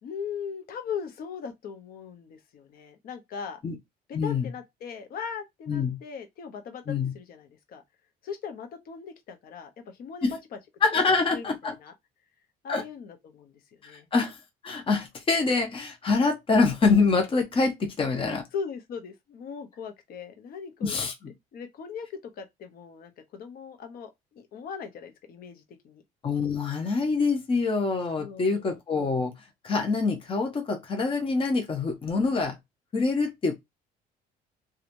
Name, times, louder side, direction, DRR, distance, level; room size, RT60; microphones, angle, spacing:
voice 1, 0.0-3.6 4.1-7.8 8.2-10.4 11.3-11.9 12.6-14.1 18.5-21.1 21.5-26.0 28.2-28.8, left 6 dB, 60° left, 0.9 m, -39 dB
voice 2, 4.1-4.4 5.7-6.0 6.9-7.1 10.2-10.3 10.8-11.7 12.7-12.8 13.8-14.4 14.6-18.5 20.8-21.1 26.2-29.3 29.6-32.6 32.9-33.5, left 4 dB, 30° left, 0.8 m, -25 dB
3.0 x 2.4 x 2.6 m
cardioid pair, 110°, 17 cm